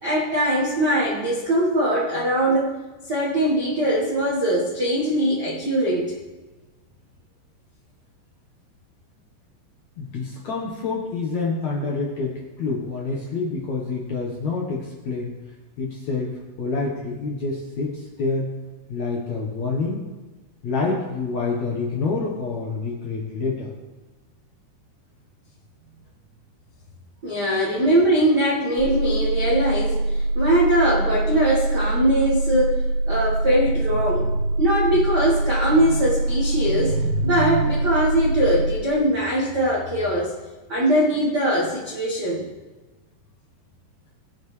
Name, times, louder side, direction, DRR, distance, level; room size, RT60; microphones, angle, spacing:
voice 1, 0.0-2.7 3.1-6.1 27.2-32.8 33.1-34.3 34.6-40.3 40.7-42.4, right 1 dB, 70° right, -5 dB, 0.9 m, -21 dB
voice 2, 10.0-15.3 15.8-18.5 18.9-20.1 20.6-23.7, left 3 dB, 65° left, -3 dB, 1.8 m, -27 dB
sound 1, 28.8-38.8, right 2 dB, 85° right, 2.7 m, -24 dB
20.5 x 7.1 x 3.3 m, 1.2 s
omnidirectional pair, 4.8 m